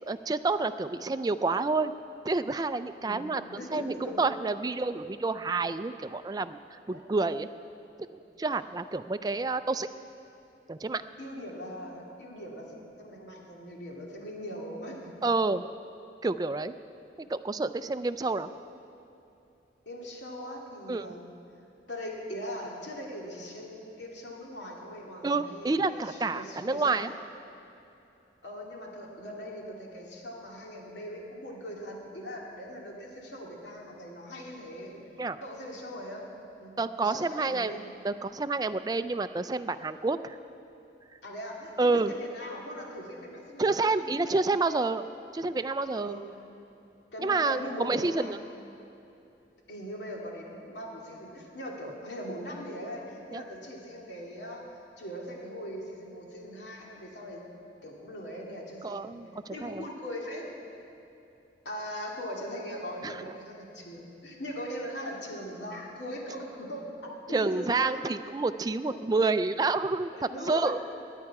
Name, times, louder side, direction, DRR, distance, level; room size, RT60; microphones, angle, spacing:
voice 1, 0.1-1.9 2.2-6.6 6.9-7.5 8.4-9.9 10.7-11.0 15.2-15.6 16.2-16.7 17.2-18.5 20.9-21.1 25.2-27.1 35.2-35.4 36.8-37.7 38.0-40.4 41.8-42.1 43.6-45.0 45.3-46.2 47.2-48.4 53.3-53.4 58.8-59.8 63.0-63.2 67.3-70.1 70.5-70.8, right 3 dB, 20° right, 11 dB, 0.3 m, -29 dB
voice 2, 3.0-4.2 6.9-7.0 8.4-8.5 11.2-15.2 19.9-21.3 21.9-27.2 28.4-34.9 35.4-36.3 36.6-37.9 41.2-43.8 44.0-44.4 46.0-46.2 47.1-48.4 49.7-57.4 57.8-59.1 59.5-60.4 61.6-68.0 68.9-69.0 70.1-70.8, equal, 85° left, -2 dB, 2.4 m, -40 dB
19.0 x 10.0 x 4.8 m, 2.8 s
head